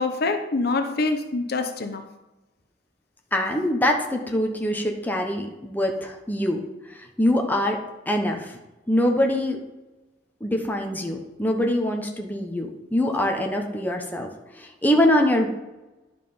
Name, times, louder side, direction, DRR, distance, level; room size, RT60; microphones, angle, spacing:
voice 1, 0.0-2.0, left 3 dB, 60° left, 5 dB, 0.9 m, -25 dB
voice 2, 3.3-6.6 6.9-7.8 8.1-8.6 8.9-9.6 10.4-14.3 14.6-15.5, left 1 dB, 10° left, 2 dB, 1.0 m, -24 dB
11.0 x 4.9 x 5.4 m, 1.1 s
head